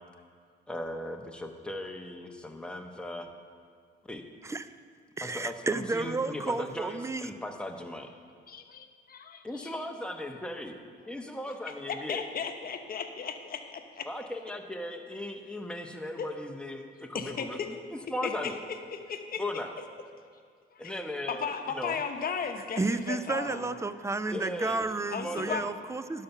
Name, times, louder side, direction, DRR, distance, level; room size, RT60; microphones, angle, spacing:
voice 1, 0.7-3.3 4.1-4.2 5.2-8.1 9.4-10.8 11.1-12.2 14.0-18.6 19.4-19.7 20.8-22.0 24.3-24.9 25.2-25.7, left 1 dB, 5° left, 3 dB, 1.0 m, -37 dB
voice 2, 5.2-7.3 22.8-26.2, right 3 dB, 15° right, 13 dB, 0.4 m, -32 dB
voice 3, 8.5-9.8 11.5-14.1 16.2-16.3 17.1-17.7 18.2-18.5 18.9-19.4 20.7-20.9 21.3-23.7 25.1-25.6, left 6 dB, 50° left, 6 dB, 0.9 m, -36 dB
11.5 x 5.7 x 5.8 m, 2.1 s
cardioid pair, 90°, 20 cm